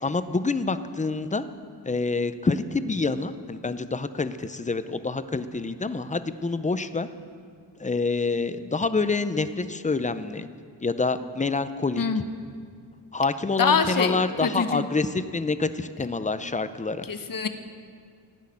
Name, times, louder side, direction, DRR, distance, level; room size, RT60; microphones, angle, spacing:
voice 1, 0.0-1.4 1.9-7.1 7.8-10.5 10.8-12.0 13.1-17.1, left 3 dB, 20° left, 12 dB, 0.5 m, -27 dB
voice 2, 13.6-14.9 17.0-17.5, left 5 dB, 50° left, 8 dB, 1.0 m, -25 dB
15.5 x 6.4 x 9.7 m, 2.1 s
wide cardioid pair, 105°, 42 cm